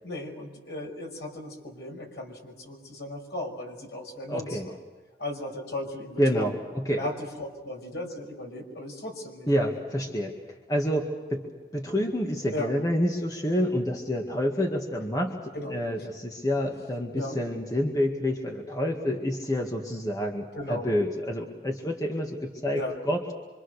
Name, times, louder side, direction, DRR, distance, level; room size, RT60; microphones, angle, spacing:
voice 1, 0.0-4.6 5.2-6.5 6.9-9.7 12.5-12.7 15.5-15.7 16.7-16.8 17.1-17.4 20.5-20.9 22.7-22.9, left 1 dB, 75° left, 2 dB, 5.5 m, -36 dB
voice 2, 4.3-4.7 6.2-7.0 9.5-10.3 10.7-11.5 11.7-15.4 15.7-23.2, equal, 20° left, 1 dB, 2.0 m, -28 dB
26.0 x 25.5 x 6.6 m, 1.3 s
head